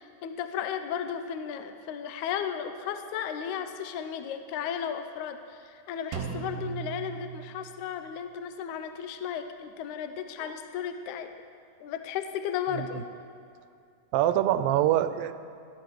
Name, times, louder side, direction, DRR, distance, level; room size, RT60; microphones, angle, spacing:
voice 1, 0.0-11.3 11.8-13.0, left 8 dB, 75° left, 8 dB, 1.8 m, -34 dB
Drum, 6.1-8.0, right 8 dB, 60° right, 1.9 m, -37 dB
voice 2, 14.1-15.3, right 12 dB, 85° right, 12 dB, 2.3 m, -25 dB
16.5 x 12.5 x 4.7 m, 2.4 s
omnidirectional pair, 4.0 m